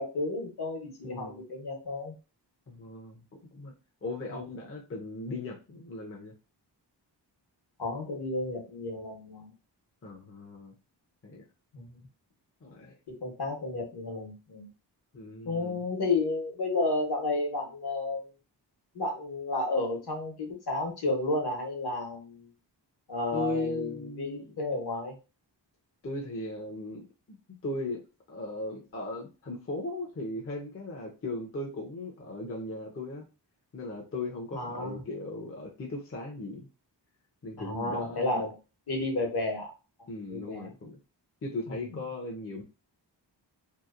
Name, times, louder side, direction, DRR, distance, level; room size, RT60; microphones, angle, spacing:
voice 1, 0.0-2.1 7.8-9.5 11.7-12.0 13.1-14.7 15.4-18.2 18.9-22.5 23.1-25.2 34.5-35.0 37.6-38.5 38.9-39.7 40.3-40.7 41.7-42.0, left 2 dB, 60° left, 2 dB, 0.9 m, -32 dB
voice 2, 1.0-1.4 2.7-3.2 3.5-3.7 4.0-6.3 10.0-10.7 11.2-11.4 12.6-13.0 15.1-15.8 23.3-24.7 26.0-27.4 27.6-28.0 28.3-33.3 33.7-36.7 37.4-38.4 40.1-41.0 41.4-42.6, left 2 dB, 30° left, 0 dB, 0.5 m, -38 dB
2.8 x 2.0 x 2.4 m, 0.31 s
wide cardioid pair, 110°, 43 cm